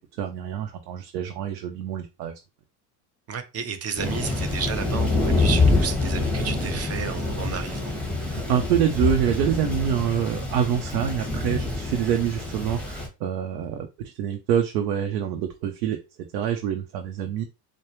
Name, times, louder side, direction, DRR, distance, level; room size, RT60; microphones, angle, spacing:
voice 1, 0.0-2.4 8.2-16.0 16.3-17.4, right 9 dB, 75° right, 0.7 m, -26 dB
voice 2, 3.3-7.9, right 7 dB, 30° right, 0.8 m, -32 dB
Thunder, 4.0-13.1, left 2 dB, ahead, 1.2 m, -26 dB
4.7 x 2.1 x 3.0 m
hypercardioid pair, 90°, 49 cm